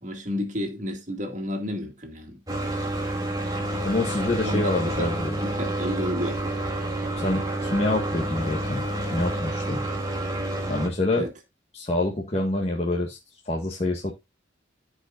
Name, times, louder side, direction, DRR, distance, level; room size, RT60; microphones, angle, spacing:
voice 1, 0.0-2.4 4.4-6.4 11.2-11.3, equal, 40° right, 2.2 m, -31 dB
sound 1, 2.5-10.9, right 1 dB, 20° right, 2.8 m, -29 dB
voice 2, 3.8-5.4 7.2-8.8 9.1-9.8 10.7-11.2 11.7-13.2 13.4-14.1, left 2 dB, 30° left, 1.6 m, -26 dB
15.0 x 5.2 x 2.5 m
head